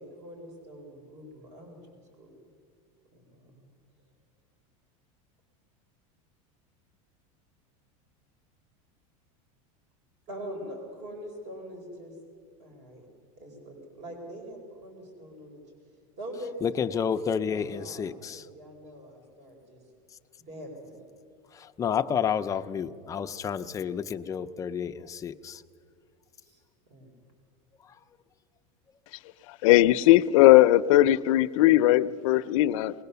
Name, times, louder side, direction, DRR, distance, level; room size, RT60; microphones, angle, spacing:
voice 1, 0.0-2.3 3.1-3.7 10.3-12.1 12.6-13.1 13.4-15.6 16.2-18.1 18.3-19.8 20.5-21.0 26.4-26.6 26.9-27.1, equal, 40° right, 2 dB, 4.5 m, -43 dB
voice 2, 16.6-18.5 21.5-25.6 27.8-28.0, left 7 dB, 20° left, 8 dB, 0.5 m, -30 dB
voice 3, 29.6-32.9, left 15 dB, 70° left, 13 dB, 0.6 m, -19 dB
21.0 x 19.5 x 6.9 m, 2.2 s
supercardioid pair, 155°, 18 cm